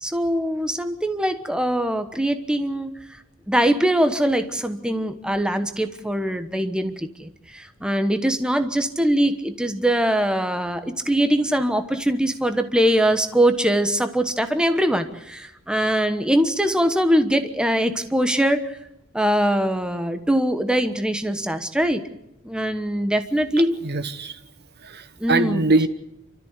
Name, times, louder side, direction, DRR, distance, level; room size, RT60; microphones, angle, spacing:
voice 1, 0.0-2.9 3.5-18.8 19.1-22.0 22.4-23.8 25.2-25.6, right 1 dB, 5° right, 8 dB, 1.1 m, -22 dB
voice 2, 23.8-24.4 24.8-25.9, right 2 dB, 50° right, 11 dB, 1.1 m, -22 dB
29.0 x 13.5 x 8.1 m, 0.86 s
head